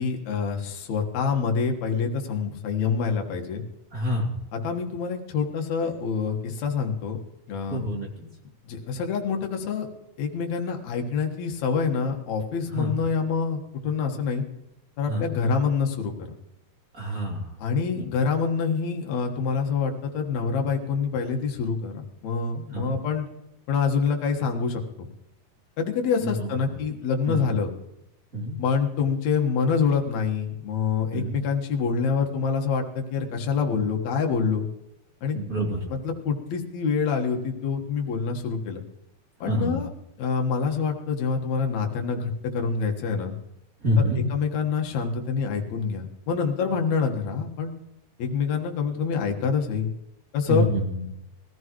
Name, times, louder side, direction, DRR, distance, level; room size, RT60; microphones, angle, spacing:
voice 1, 0.0-3.6 4.5-7.2 7.5-7.8 8.7-9.9 10.2-14.4 15.0-16.1 17.6-23.3 23.7-25.1 25.8-27.7 28.6-34.7 35.2-35.4 35.9-38.8 39.4-39.9 40.2-43.3 44.0-47.7 48.2-49.9 50.3-50.7, left 5 dB, 60° left, 2 dB, 2.7 m, -26 dB
voice 2, 3.9-4.3 7.7-8.3 12.7-13.0 15.1-15.3 16.9-17.5 17.9-18.0 22.7-23.0 26.2-26.7 27.3-27.5 28.3-28.6 31.1-31.4 35.3-35.8 39.5-39.8 43.8-44.2 50.5-51.1, equal, 25° right, -2 dB, 3.0 m, -27 dB
22.0 x 15.0 x 3.1 m, 0.90 s
omnidirectional pair, 3.9 m